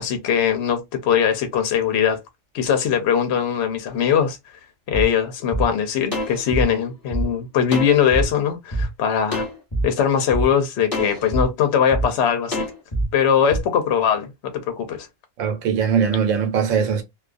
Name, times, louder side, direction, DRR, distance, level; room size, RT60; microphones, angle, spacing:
voice 1, 0.0-2.2 2.5-4.4 4.9-9.4 9.8-12.7 13.1-15.1, left 8 dB, 65° left, 0.8 m, -21 dB
sound 1, 4.9-5.0 5.5-5.6 6.1-7.2 7.7-8.2 8.7-8.8 9.3-9.8 10.3-10.4 10.9-11.4 11.9-12.0 12.5-13.0 13.5-13.6, right 1 dB, 20° left, 0.9 m, -25 dB
voice 2, 15.4-17.0, right 7 dB, 85° right, 1.0 m, -20 dB
2.3 x 2.3 x 2.4 m
omnidirectional pair, 1.3 m